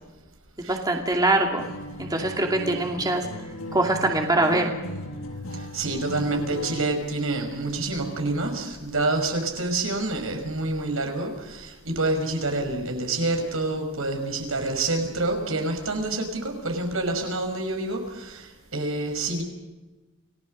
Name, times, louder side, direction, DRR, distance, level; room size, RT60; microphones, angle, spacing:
voice 1, 0.7-1.7 2.0-3.3 3.7-4.6, right 2 dB, 20° right, 1 dB, 2.5 m, -23 dB
Acoustic guitar, 1.6-7.0, equal, 80° left, 7.5 m, -36 dB
voice 2, 5.5-19.4, right 2 dB, 70° right, 4 dB, 5.9 m, -27 dB
29.5 x 18.5 x 6.5 m, 1.1 s
head